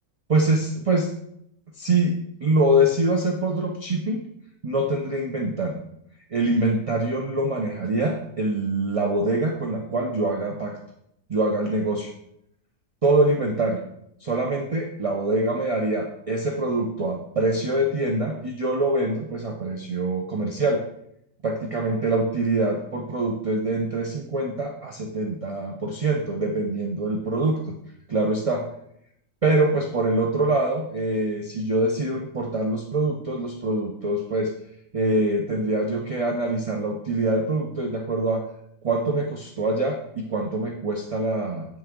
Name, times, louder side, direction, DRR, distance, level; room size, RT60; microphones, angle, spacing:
voice 1, 0.3-1.1 1.8-4.2 4.6-5.8 6.3-10.8 11.3-12.1 13.0-13.8 14.2-20.8 21.4-27.6 28.1-28.6 29.4-34.5 34.9-38.4 38.8-41.7, right 2 dB, 40° right, 1 dB, 0.5 m, -24 dB
8.2 x 6.3 x 3.7 m, 0.73 s
omnidirectional pair, 1.6 m